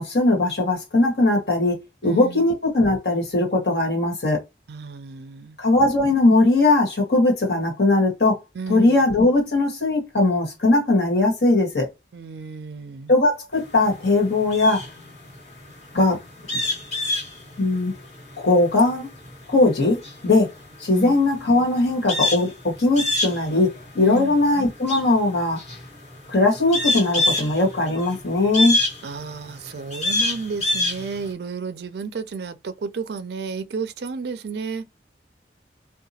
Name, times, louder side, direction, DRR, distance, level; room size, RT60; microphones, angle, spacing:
voice 1, 0.0-4.4 5.6-8.4 8.7-11.9 13.1-14.8 15.9-16.2 17.6-17.9 18.4-19.1 19.5-20.5 20.8-25.6 26.3-28.8, left 2 dB, 65° left, 1.5 m, -19 dB
voice 2, 2.0-2.5 4.7-5.6 8.6-9.1 12.1-13.1 20.9-21.2 24.0-24.4 29.0-34.9, right 5 dB, 65° right, 0.4 m, -32 dB
sound 1, 13.5-31.3, left 2 dB, 40° left, 1.6 m, -27 dB
2.7 x 2.2 x 2.7 m
head